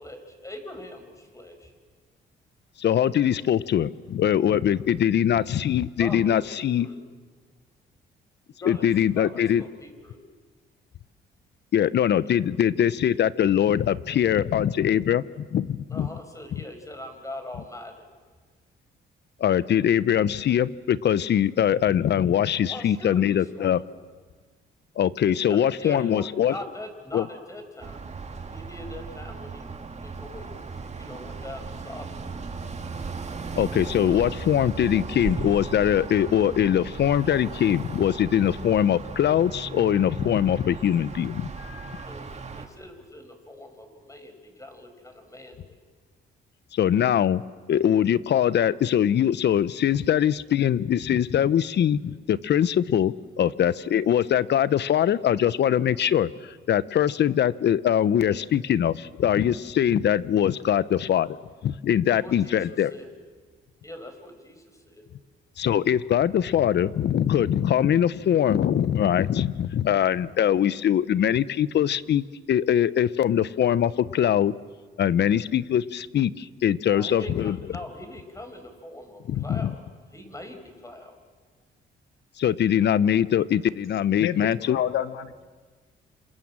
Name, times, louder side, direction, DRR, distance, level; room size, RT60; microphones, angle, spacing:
voice 1, 0.0-1.7 6.0-7.0 8.6-8.9 9.2-10.2 12.2-12.3 15.9-18.0 22.7-23.7 25.4-28.0 28.3-29.7 30.0-30.5 31.0-32.2 42.1-45.8 62.1-62.6 62.9-63.1 63.8-65.1 76.9-79.8 80.1-81.2, left 1 dB, 15° left, 5 dB, 5.7 m, -41 dB
voice 2, 2.8-6.9 8.6-9.6 11.7-16.1 19.4-23.8 25.0-26.5 27.1-27.3 33.5-42.0 46.7-47.4 47.7-61.4 61.6-62.9 65.6-74.5 75.0-77.6 79.3-79.7 82.4-84.8, left 10 dB, 60° left, 17 dB, 0.9 m, -22 dB
sound 1, 27.8-42.7, right 4 dB, 35° right, 2.3 m, -37 dB
voice 3, 84.7-85.4, left 11 dB, 80° left, 12 dB, 1.4 m, -28 dB
27.5 x 27.0 x 7.6 m, 1.5 s
cardioid pair, 90°, 20 cm